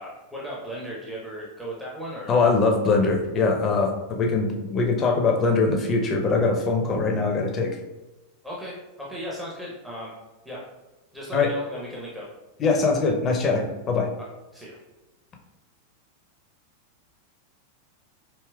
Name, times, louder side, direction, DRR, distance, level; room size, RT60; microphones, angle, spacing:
voice 1, 0.0-2.4 8.4-10.1 10.4-10.7 11.1-12.3 14.2-14.3 14.5-14.8, equal, 5° right, -5 dB, 0.8 m, -36 dB
voice 2, 2.3-7.8 11.3-11.5 12.6-14.1, left 4 dB, 25° left, 2 dB, 0.6 m, -22 dB
4.9 x 2.8 x 2.3 m, 1.1 s
figure-of-eight pair, 90°, 0 cm